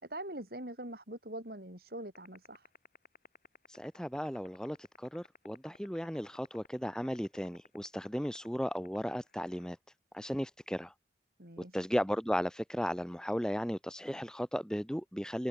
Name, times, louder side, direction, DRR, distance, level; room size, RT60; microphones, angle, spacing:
voice 1, 0.0-2.7 11.4-11.8, right 1 dB, 55° right, 6.2 m, -43 dB
sound 1, 2.2-9.7, left 4 dB, 45° left, 6.7 m, -54 dB
voice 2, 3.7-9.8 10.1-10.9 11.7-15.5, equal, 5° left, 2.5 m, -35 dB
head